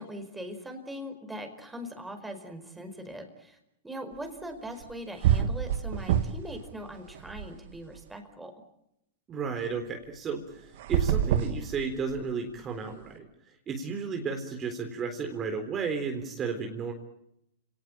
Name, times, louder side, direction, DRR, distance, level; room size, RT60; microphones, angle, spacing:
voice 1, 0.0-3.6 3.8-8.5, equal, 5° right, 6 dB, 5.0 m, -41 dB
sound 1, 4.8-4.9 5.2-6.6 6.9-8.0 10.7-12.3, right 10 dB, 60° right, 2.3 m, -27 dB
voice 2, 9.3-13.3 13.7-16.9, right 5 dB, 25° right, 4 dB, 3.7 m, -33 dB
29.5 x 18.5 x 8.9 m, 0.81 s
hypercardioid pair, 110°, 0 cm